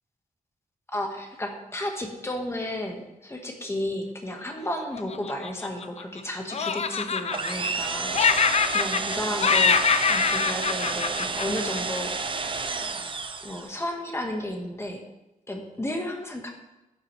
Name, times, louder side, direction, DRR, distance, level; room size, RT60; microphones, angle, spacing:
voice 1, 0.9-9.8 10.1-12.4 13.4-15.0 15.5-16.5, left 1 dB, 15° left, 2 dB, 1.4 m, -33 dB
Laughter, 5.0-6.2 6.5-7.9 8.1-9.2 9.4-12.0, left 5 dB, 45° left, 0.5 m, -24 dB
sound 1, 7.3-13.8, right 4 dB, 35° right, 0.6 m, -31 dB
12.0 x 9.2 x 3.2 m, 0.98 s
wide cardioid pair, 175°, 15 cm